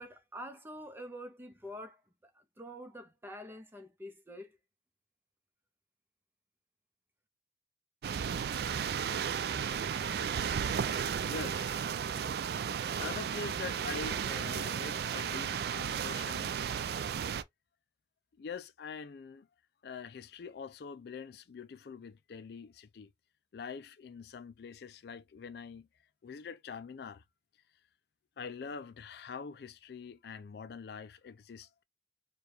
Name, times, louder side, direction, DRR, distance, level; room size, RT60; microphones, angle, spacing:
voice 1, 0.0-4.6, equal, 10° right, 0.7 m, -46 dB
sound 1, 8.0-17.4, right 7 dB, 60° right, 0.3 m, -34 dB
voice 2, 11.2-11.8 12.1-12.4 13.0-16.6 18.4-19.5 19.8-23.1 23.5-25.9 26.2-27.2 28.4-31.8, left 5 dB, 60° left, 0.4 m, -44 dB
4.6 x 2.3 x 3.2 m
head